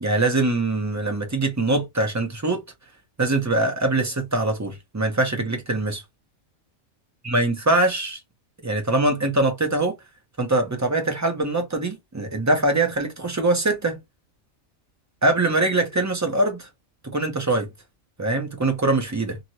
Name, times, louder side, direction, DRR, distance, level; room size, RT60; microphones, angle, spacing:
voice 1, 0.0-2.6 3.2-6.0 7.2-8.2 8.6-10.0 10.4-14.0 15.2-16.7 17.0-17.7 18.2-19.4, right 2 dB, 25° right, 0.3 m, -23 dB
2.9 x 2.7 x 2.8 m
omnidirectional pair, 1.4 m